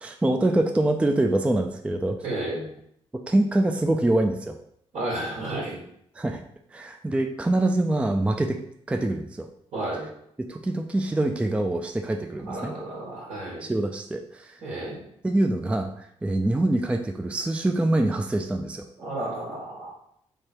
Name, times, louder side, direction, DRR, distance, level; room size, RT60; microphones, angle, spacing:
voice 1, 0.0-2.2 3.3-4.6 6.1-6.4 6.7-8.6 8.9-9.5 10.5-12.7 13.6-14.6 15.2-18.8, right 1 dB, 10° right, 5 dB, 0.3 m, -25 dB
voice 2, 2.2-2.6 4.9-5.8 9.7-10.1 12.5-13.7 14.6-15.0 19.0-19.9, right 1 dB, 75° right, -5 dB, 1.6 m, -32 dB
3.4 x 3.3 x 4.4 m, 0.70 s
cardioid pair, 85°, 12 cm